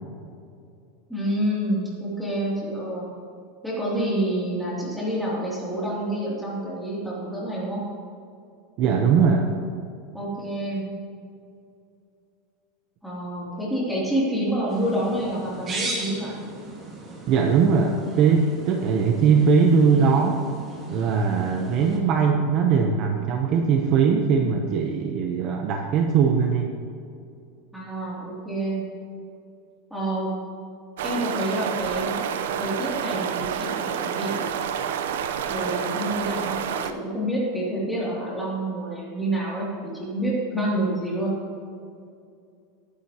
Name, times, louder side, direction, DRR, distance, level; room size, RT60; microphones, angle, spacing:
voice 1, 1.1-3.1 3.6-7.8 10.1-10.9 13.0-16.3 27.7-28.8 29.9-30.3 31.0-32.2 32.6-34.5 35.5-39.7 39.9-41.3, right 1 dB, ahead, -7 dB, 2.7 m, -28 dB
voice 2, 8.8-9.5 17.3-20.4 20.9-26.7, right 5 dB, 35° right, 3 dB, 0.8 m, -20 dB
sound 1, 14.7-22.0, right 2 dB, 20° right, 1.8 m, -37 dB
sound 2, 31.0-36.9, right 8 dB, 80° right, 0.7 m, -28 dB
18.5 x 9.9 x 2.9 m, 2.4 s
supercardioid pair, 180°, 0 cm